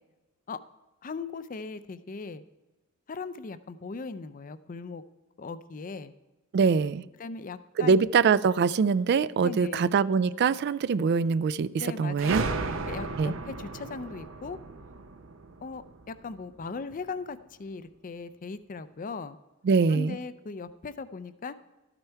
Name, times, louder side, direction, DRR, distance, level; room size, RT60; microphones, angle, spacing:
voice 1, 1.0-2.4 3.1-5.0 5.4-6.1 7.2-8.0 9.4-9.9 11.8-12.6 12.9-14.6 15.6-19.4 19.9-21.6, left 4 dB, 40° left, 0.5 m, -38 dB
voice 2, 6.5-7.0 7.8-12.4 13.2-13.3 19.7-20.2, right 5 dB, 55° right, 0.3 m, -23 dB
sound 1, 12.2-16.6, right 3 dB, 75° right, 0.7 m, -35 dB
12.5 x 8.9 x 4.5 m
head